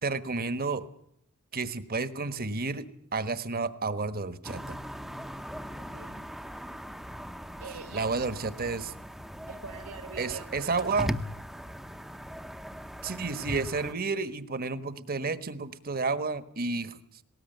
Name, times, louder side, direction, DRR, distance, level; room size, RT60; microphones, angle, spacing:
voice 1, 0.0-0.8 1.5-2.9 3.1-4.8 7.9-8.9 10.2-11.1 13.0-17.0, right 4 dB, 45° right, 13 dB, 1.3 m, -31 dB
sound 1, 4.4-13.9, equal, ahead, 0.8 m, -39 dB
voice 2, 5.7-6.2 7.6-8.3 9.5-11.1, right 5 dB, 70° right, 5 dB, 1.2 m, -44 dB
19.0 x 18.5 x 9.1 m, 0.72 s
head